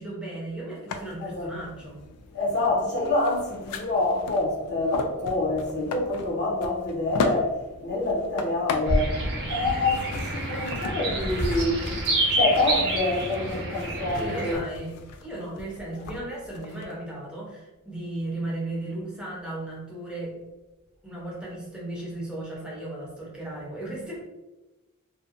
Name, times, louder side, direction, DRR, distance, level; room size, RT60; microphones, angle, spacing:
voice 1, 0.0-2.0 14.2-14.9 15.2-20.4 21.0-24.2, right 1 dB, 5° right, -5 dB, 0.7 m, -35 dB
sound 1, 0.9-16.9, left 3 dB, 80° left, 0.3 m, -37 dB
voice 2, 2.3-12.0 12.3-14.6, left 2 dB, 50° left, -4 dB, 0.7 m, -27 dB
sound 2, 8.9-14.5, right 1 dB, 50° right, 0.7 m, -28 dB
2.6 x 2.2 x 2.5 m, 1.1 s
head